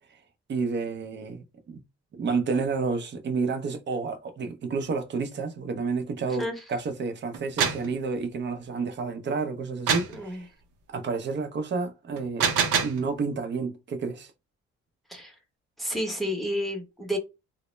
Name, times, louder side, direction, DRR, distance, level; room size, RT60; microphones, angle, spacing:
voice 1, 0.5-1.8 2.1-10.5 10.9-12.5 12.8-14.3, right 4 dB, 40° right, 0.5 m, -30 dB
sound 1, 7.3-7.9 9.9-10.2 12.2-13.0, right 6 dB, 90° right, 0.6 m, -25 dB
voice 2, 15.8-17.2, equal, ahead, 0.8 m, -30 dB
2.0 x 2.0 x 3.0 m
cardioid pair, 90°, 30 cm